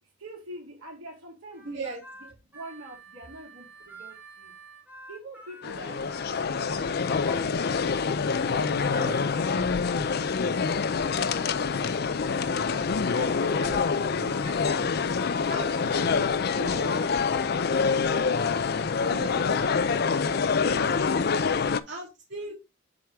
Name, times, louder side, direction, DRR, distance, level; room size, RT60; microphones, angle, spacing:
voice 1, 0.0-1.9 2.1-4.6 5.1-7.6 8.4-12.0 12.4-13.9 14.3-15.4 15.7-18.9 19.3-21.7 22.5-22.6, right 1 dB, 90° right, 2.8 m, -47 dB
Harmonica, 1.5-8.1, right 2 dB, 10° right, 1.8 m, -49 dB
voice 2, 1.6-2.0 9.0-9.2 13.2-14.5 14.8-15.0 15.5-15.7 16.6-16.9 19.1-19.4 21.9-22.5, right 2 dB, 55° right, 2.1 m, -38 dB
sound 1, 5.6-21.8, left 5 dB, 50° left, 0.4 m, -26 dB
7.6 x 4.7 x 3.5 m
head